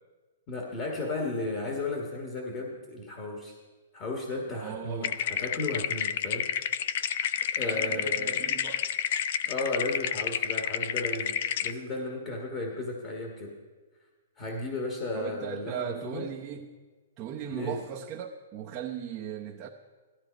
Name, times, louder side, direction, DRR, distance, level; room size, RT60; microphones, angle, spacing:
voice 1, 0.5-3.5 3.9-6.5 7.5-8.4 9.5-11.4 11.6-13.5 14.4-16.3 17.5-17.8, left 2 dB, 25° left, 1 dB, 1.5 m, -34 dB
voice 2, 4.5-5.2 7.6-8.9 15.1-16.7 17.2-19.7, right 9 dB, 20° right, -1 dB, 0.8 m, -38 dB
sound 1, 5.0-11.7, left 9 dB, 45° left, 0.5 m, -30 dB
17.0 x 13.5 x 5.2 m, 1.4 s
hypercardioid pair, 170°, 0 cm